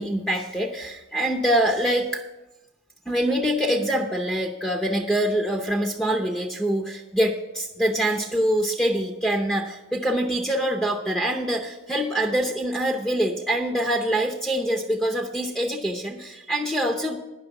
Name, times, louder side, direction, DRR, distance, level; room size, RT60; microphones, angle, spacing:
voice 1, 0.0-2.2 3.1-17.2, right 1 dB, 5° left, 2 dB, 0.7 m, -25 dB
10.0 x 6.3 x 8.1 m, 1.0 s
head